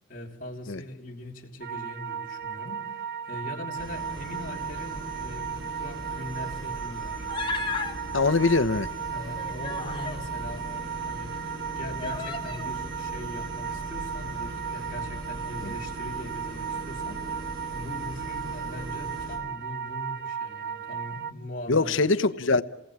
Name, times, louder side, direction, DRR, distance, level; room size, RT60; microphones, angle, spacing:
voice 1, 0.1-7.3 9.1-11.3 11.8-17.4 17.7-22.0, left 1 dB, 40° left, 0 dB, 3.4 m, -41 dB
sound 1, 1.6-21.3, right 7 dB, 50° right, 1.2 m, -36 dB
sound 2, 3.7-19.4, right 1 dB, 80° right, 6.2 m, -40 dB
Human voice, 7.3-7.9 9.1-10.2 11.0-11.1 12.0-12.7, left 4 dB, 25° left, 1.6 m, -34 dB
voice 2, 8.1-8.9 15.6-15.7 21.7-22.6, left 3 dB, 70° left, 13 dB, 0.9 m, -23 dB
28.5 x 19.0 x 8.8 m, 0.92 s
head